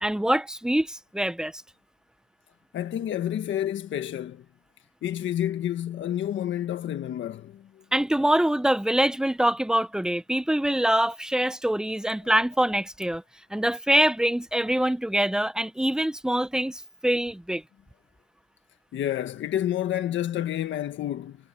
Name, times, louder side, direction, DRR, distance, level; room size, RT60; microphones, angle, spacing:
voice 1, 0.0-1.5 7.9-13.2 13.5-17.6, right 1 dB, 5° right, 0.9 m, -24 dB
voice 2, 2.7-4.4 5.0-7.6 18.9-21.4, left 11 dB, 70° left, 1.5 m, -29 dB
cardioid pair, 90°, 20 cm